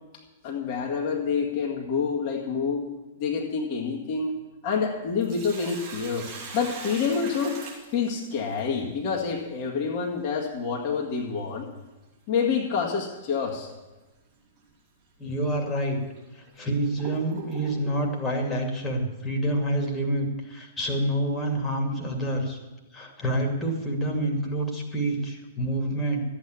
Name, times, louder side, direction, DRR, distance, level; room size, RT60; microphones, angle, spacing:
voice 1, 0.4-2.8 3.2-4.3 4.6-6.3 6.5-7.6 7.9-11.7 12.3-13.7, left 5 dB, 40° left, -2 dB, 2.0 m, -27 dB
Sink (filling or washing), 5.0-8.6 11.0-11.1 13.0-13.2 13.7-13.8 14.6-14.7 15.4-15.5 16.2-18.1, right 4 dB, 35° right, 5.0 m, -41 dB
voice 2, 15.2-16.0 16.4-22.6 22.9-26.2, right 1 dB, 15° left, 1 dB, 2.7 m, -27 dB
13.5 x 8.9 x 8.5 m, 1.1 s
figure-of-eight pair, 105°, 0 cm